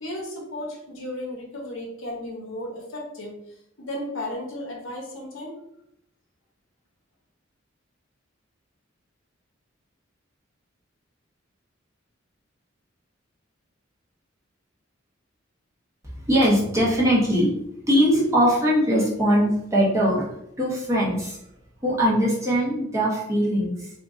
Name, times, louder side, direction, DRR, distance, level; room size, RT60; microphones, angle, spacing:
voice 1, 0.0-3.3 3.8-5.5, left 1 dB, 90° left, 0 dB, 0.9 m, -34 dB
voice 2, 16.3-17.5 17.9-20.3 20.6-21.4 21.8-23.9, equal, 15° right, -6 dB, 0.9 m, -21 dB
2.7 x 2.5 x 3.6 m, 0.78 s
head